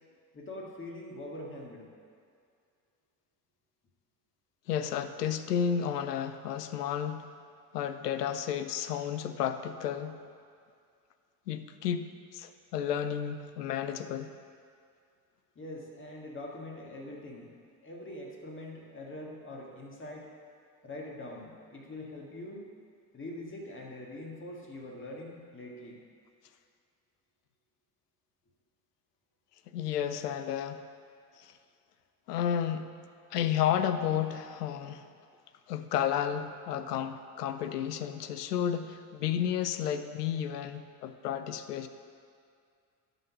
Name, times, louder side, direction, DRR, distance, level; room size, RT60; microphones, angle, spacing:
voice 1, 0.3-1.9 15.6-17.5 17.8-20.3 20.8-22.7 23.1-26.0, left 1 dB, 25° left, -1 dB, 1.9 m, -43 dB
voice 2, 4.7-7.3 7.7-10.2 11.5-14.3 29.7-30.8 31.4-31.6 32.3-32.9 33.3-35.1 35.7-41.9, left 9 dB, 85° left, 10 dB, 0.6 m, -32 dB
11.5 x 3.9 x 6.0 m, 2.3 s
hypercardioid pair, 70°, 46 cm